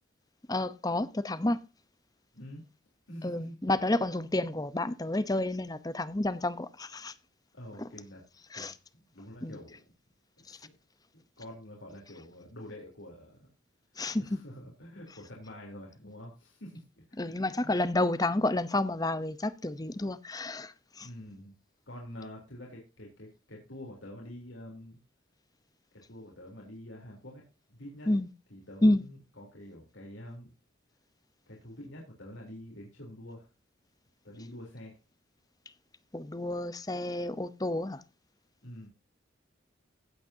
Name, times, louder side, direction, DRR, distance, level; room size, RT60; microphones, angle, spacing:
voice 1, 0.5-1.6 3.2-7.1 8.5-8.7 9.4-9.5 10.5-10.6 14.0-14.4 17.2-21.1 28.1-28.3 28.8-29.0 36.1-38.0, left 1 dB, 20° left, 0.7 m, -30 dB
voice 2, 2.3-2.7 3.1-3.6 7.5-8.2 8.5-9.8 10.4-10.8 11.1-13.5 14.2-17.4 21.0-21.6 21.9-25.0 25.9-28.2 28.5-30.5 31.5-33.5 34.2-35.0 38.6-38.9, left 1 dB, 80° left, 3.6 m, -47 dB
16.0 x 8.7 x 2.8 m
head